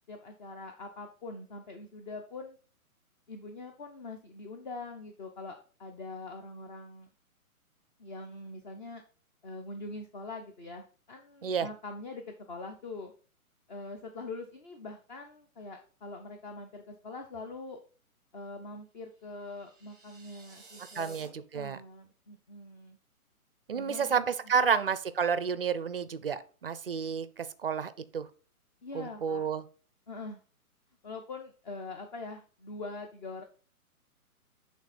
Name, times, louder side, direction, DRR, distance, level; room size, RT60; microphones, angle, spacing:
voice 1, 0.1-2.6 3.3-7.1 8.0-9.0 9.4-12.2 12.5-13.1 13.7-17.8 18.3-23.0 23.7-24.2 24.6-24.7 28.8-29.5 30.1-30.4 31.0-33.4, left 3 dB, 30° left, 5 dB, 0.8 m, -43 dB
sound 1, 19.2-21.3, right 4 dB, ahead, 0.9 m, -54 dB
voice 2, 21.0-21.8 23.7-28.3 28.9-29.6, right 6 dB, 45° right, 14 dB, 0.4 m, -30 dB
8.6 x 3.5 x 4.1 m, 0.38 s
hypercardioid pair, 150°, 44 cm